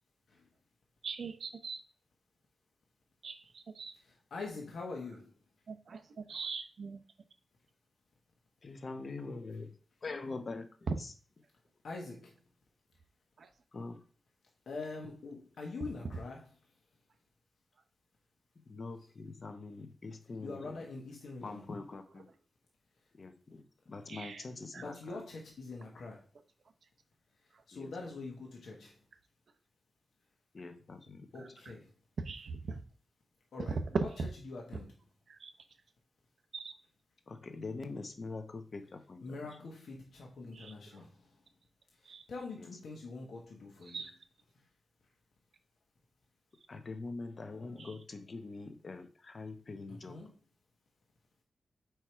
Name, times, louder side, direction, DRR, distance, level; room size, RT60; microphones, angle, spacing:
voice 1, 1.0-1.8 3.2-3.9 5.7-7.0 10.9-11.0 15.8-16.2 22.2-22.3 24.1-24.5 24.7-24.9 31.4-31.7 32.2-32.8 33.6-34.3 34.7-34.8 35.3-35.5 36.5-36.7 40.5-40.7 42.0-42.3 43.9-44.1 47.8-48.0, right 4 dB, 65° right, 8 dB, 0.7 m, -39 dB
voice 2, 4.3-5.3 11.8-12.3 14.7-16.4 20.4-21.6 24.8-26.2 27.7-28.9 31.3-31.9 33.5-34.1 34.5-34.9 39.2-41.1 42.3-44.0 50.1-50.3, left 3 dB, 85° left, -1 dB, 1.2 m, -44 dB
voice 3, 8.6-11.1 13.7-14.0 18.5-20.9 21.4-22.3 23.1-25.2 27.7-28.0 30.5-31.6 37.3-39.6 42.5-43.0 46.7-50.2, left 3 dB, 40° left, 8 dB, 0.7 m, -44 dB
4.8 x 4.6 x 4.5 m, 0.40 s
wide cardioid pair, 135°, 0 cm